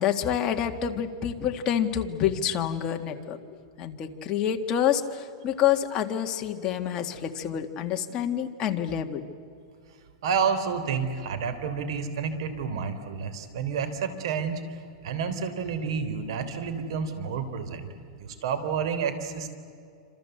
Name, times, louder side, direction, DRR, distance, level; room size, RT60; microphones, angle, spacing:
voice 1, 0.0-3.4 3.8-9.2, left 9 dB, 25° left, 4 dB, 1.9 m, -27 dB
voice 2, 10.2-17.9 18.1-19.5, right 6 dB, 65° right, 11 dB, 3.6 m, -30 dB
28.0 x 26.5 x 8.0 m, 2.3 s
supercardioid pair, 155°, 3 cm